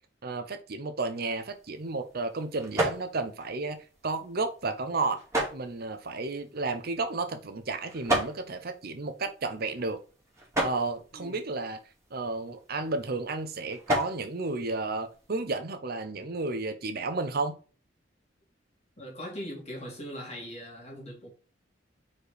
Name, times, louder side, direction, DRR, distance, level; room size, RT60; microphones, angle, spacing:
voice 1, 0.2-5.2 5.5-10.0 10.6-11.8 12.1-17.6, right 3 dB, 55° right, 0.8 m, -32 dB
sound 1, 1.1-15.5, right 1 dB, 15° right, 2.3 m, -36 dB
voice 2, 19.0-21.3, equal, 35° left, 2.8 m, -40 dB
5.0 x 4.3 x 4.8 m
head